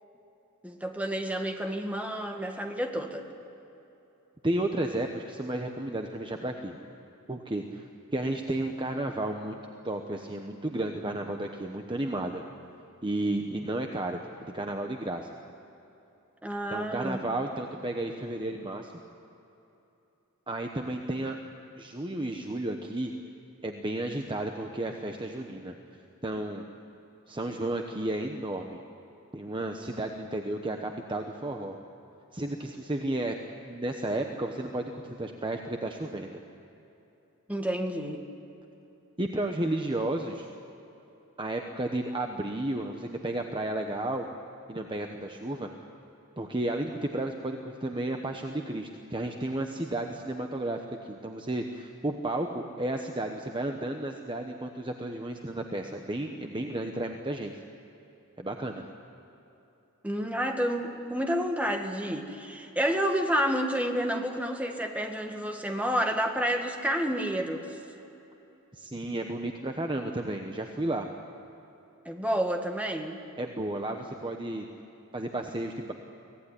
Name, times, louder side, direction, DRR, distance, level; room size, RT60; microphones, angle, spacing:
voice 1, 0.6-3.3 16.4-17.2 37.5-38.2 60.0-67.7 72.1-73.2, equal, 5° right, 3 dB, 1.8 m, -30 dB
voice 2, 4.4-6.8 7.3-9.6 9.8-12.4 13.0-14.2 14.5-15.3 16.7-18.9 20.5-21.4 21.8-23.1 23.6-25.7 26.2-26.6 27.3-28.8 29.3-31.8 32.3-33.4 33.6-36.4 39.2-40.5 41.4-44.3 44.7-45.7 46.4-50.8 51.0-57.5 58.4-58.9 68.7-71.1 73.4-74.7 75.1-75.9, right 1 dB, 20° right, 3 dB, 1.1 m, -32 dB
24.5 x 17.5 x 9.9 m, 3.0 s
head